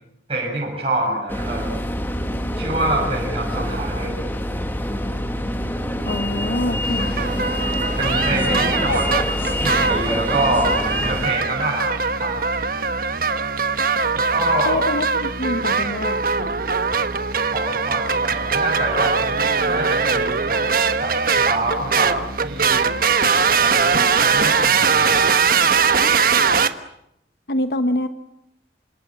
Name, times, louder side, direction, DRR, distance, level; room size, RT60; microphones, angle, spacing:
voice 1, 0.3-1.9 2.5-4.1 8.0-9.1 9.6-10.7 11.0-11.9 12.2-12.4 14.1-14.8 17.5-19.4 19.6-20.6 21.0-22.9 23.5-25.3, right 2 dB, 30° right, -4 dB, 7.4 m, -26 dB
sound 1, 1.3-11.3, equal, 10° left, 2.2 m, -25 dB
voice 2, 6.1-7.1 8.9-9.0 14.7-16.6 27.5-28.1, left 1 dB, 60° left, 9 dB, 1.2 m, -25 dB
sound 2, 6.8-26.7, right 5 dB, 50° right, 1.4 m, -21 dB
28.0 x 26.5 x 7.6 m, 0.79 s
head